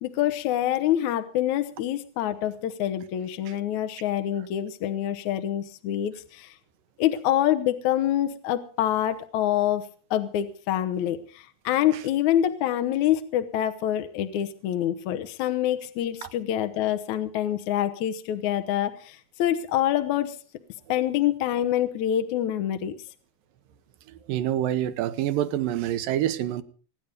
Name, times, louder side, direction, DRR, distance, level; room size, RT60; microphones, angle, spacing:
voice 1, 0.0-6.5 7.0-20.4 20.9-22.9, left 11 dB, 70° left, 2.1 m, -26 dB
voice 2, 24.3-26.6, right 12 dB, 75° right, 2.5 m, -26 dB
23.0 x 10.0 x 5.3 m
omnidirectional pair, 4.2 m